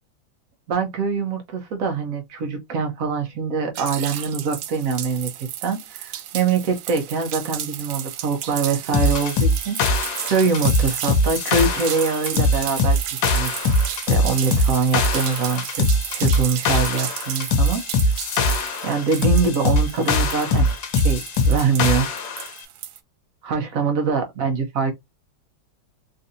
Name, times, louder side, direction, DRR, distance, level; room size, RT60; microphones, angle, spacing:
voice 1, 0.7-9.8 10.3-13.6 13.9-15.8 16.1-17.8 18.8-21.2 21.5-22.1 23.4-24.9, right 5 dB, 60° right, 0.9 m, -24 dB
sound 1, 3.8-23.0, right 12 dB, 80° right, 1.3 m, -33 dB
sound 2, 8.9-22.5, left 2 dB, 75° left, 1.4 m, -21 dB
3.8 x 2.6 x 2.6 m
omnidirectional pair, 2.1 m